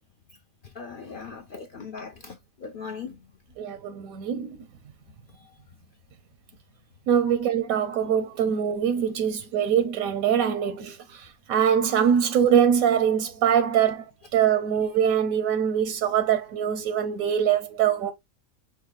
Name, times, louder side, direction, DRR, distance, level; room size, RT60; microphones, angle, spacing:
voice 1, 0.6-3.2, left 5 dB, 55° left, 0.6 m, -39 dB
voice 2, 3.6-4.6 7.1-11.0 11.5-14.0 14.3-18.1, right 8 dB, 85° right, 1.0 m, -23 dB
5.4 x 2.4 x 3.2 m
omnidirectional pair, 1.5 m